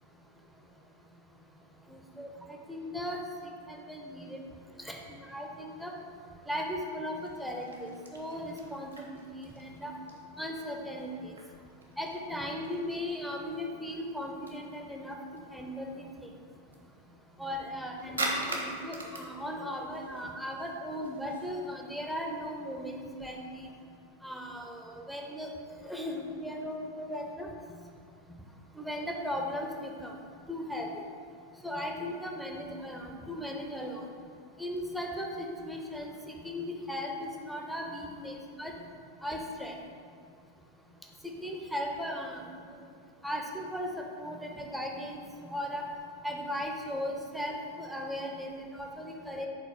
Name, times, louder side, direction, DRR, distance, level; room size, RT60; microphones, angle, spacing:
voice 1, 1.9-3.2 3.7-4.4 4.8-5.9 6.5-9.9 10.4-11.3 12.0-16.3 17.4-23.7 24.2-25.5 25.8-27.5 28.8-30.1 30.5-31.0 31.6-34.0 34.6-36.1 36.4-38.7 39.2-39.7 41.4-42.4 42.7-42.8 43.2-45.8 46.2-49.5, equal, ahead, 0 dB, 0.7 m, -37 dB
sound 1, 7.1-21.5, right 1 dB, 75° right, 0.8 m, -43 dB
4.9 x 3.8 x 5.3 m, 2.1 s
figure-of-eight pair, 90°, 0 cm